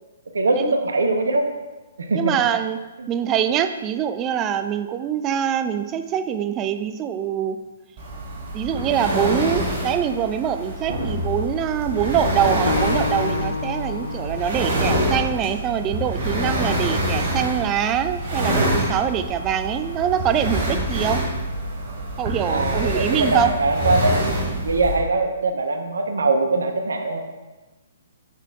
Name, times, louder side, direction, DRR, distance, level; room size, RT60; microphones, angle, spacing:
voice 1, 0.3-1.4 2.0-2.2 22.5-24.2 24.6-27.2, right 3 dB, 70° right, 5 dB, 1.1 m, -22 dB
voice 2, 2.1-2.8 3.1-7.6 8.5-21.2 22.2-23.5, right 9 dB, 25° right, 10 dB, 0.5 m, -24 dB
sound 1, 8.0-25.0, right 1 dB, 40° right, 3.3 m, -26 dB
Acoustic guitar, 12.7-15.9, left 4 dB, 65° left, 0.9 m, -30 dB
9.8 x 8.1 x 3.5 m, 1.1 s
figure-of-eight pair, 125°, 0 cm